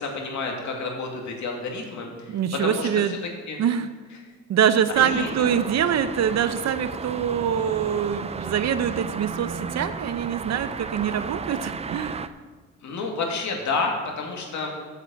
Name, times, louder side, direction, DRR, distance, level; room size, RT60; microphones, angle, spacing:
voice 1, 0.0-2.3 2.6-3.2 3.5-3.6 5.0-5.5 12.8-14.7, left 3 dB, 70° left, 1 dB, 2.3 m, -30 dB
voice 2, 2.3-3.2 3.6-3.9 4.5-12.3, right 8 dB, 60° right, 11 dB, 0.8 m, -24 dB
sound 1, 4.9-12.3, right 5 dB, 20° right, 0.4 m, -34 dB
8.6 x 6.8 x 7.5 m, 1.4 s
cardioid pair, 90°, 30 cm